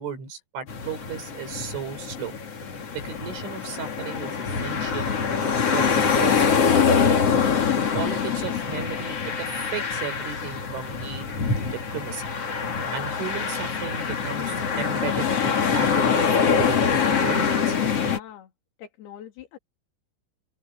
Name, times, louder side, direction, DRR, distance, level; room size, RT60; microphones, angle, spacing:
voice 1, 0.0-2.4 2.9-5.1 5.7-7.0 7.9-11.3 11.7-12.2 12.9-17.8, right 7 dB, 90° right, 7.7 m, -35 dB
sound 1, 0.7-18.2, left 6 dB, 40° left, 2.9 m, -24 dB
voice 2, 18.0-18.5 18.8-19.6, left 10 dB, 60° left, 4.1 m, -42 dB
open air
omnidirectional pair, 5.4 m